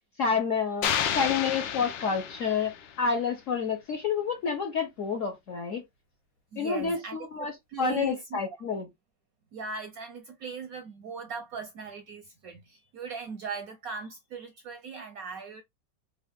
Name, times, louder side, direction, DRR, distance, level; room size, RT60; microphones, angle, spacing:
voice 1, 0.2-5.8 6.6-7.5 7.8-8.9, left 5 dB, 60° left, 0.8 m, -29 dB
sound 1, 0.8-3.0, left 9 dB, 85° left, 1.3 m, -31 dB
voice 2, 6.5-8.4 9.5-15.6, right 5 dB, 70° right, 0.8 m, -39 dB
3.6 x 2.4 x 3.4 m
omnidirectional pair, 2.0 m